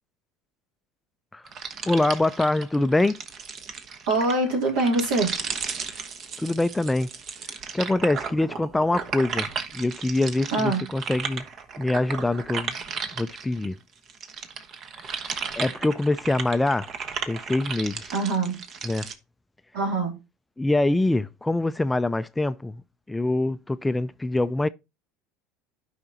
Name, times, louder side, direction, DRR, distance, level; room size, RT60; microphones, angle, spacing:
sound 1, 1.5-13.7 14.1-19.1, right 6 dB, 45° right, 1.0 m, -35 dB
voice 1, 1.9-3.2 6.4-7.1 7.7-9.5 9.7-11.4 11.8-12.7 13.2-13.8 15.1-16.9 17.3-18.1 18.9-19.1 20.6-22.8 23.1-24.7, left 2 dB, 10° left, 0.4 m, -24 dB
voice 2, 4.1-5.3 10.5-10.9 18.1-18.6 19.7-20.2, right 2 dB, 70° right, 3.0 m, -24 dB
12.0 x 5.1 x 2.8 m
hypercardioid pair, 80°, 0 cm